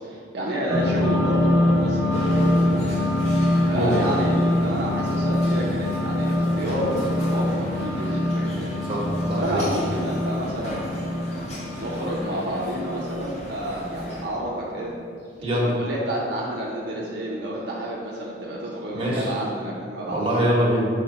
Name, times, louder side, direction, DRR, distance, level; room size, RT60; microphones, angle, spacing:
voice 1, 0.0-3.1 3.7-8.8 9.4-11.1 11.8-14.9 15.7-20.2, right 1 dB, 65° right, -5 dB, 0.8 m, -30 dB
sound 1, 0.7-14.7, left 1 dB, ahead, 1.4 m, -24 dB
sound 2, 2.1-14.2, equal, 35° left, 1.3 m, -36 dB
voice 2, 8.9-9.7 15.4-15.7 18.9-19.3 20.1-20.9, equal, 30° right, -5 dB, 1.4 m, -23 dB
4.4 x 4.2 x 5.6 m, 2.2 s
head